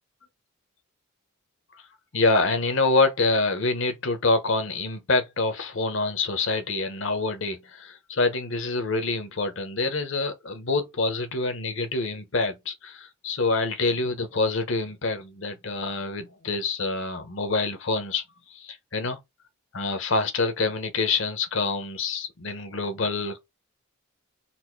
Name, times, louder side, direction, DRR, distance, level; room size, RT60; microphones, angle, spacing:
voice 1, 2.1-18.2 18.5-19.2 19.7-23.4, left 3 dB, 60° left, 0.9 m, -26 dB
4.3 x 2.6 x 4.5 m
head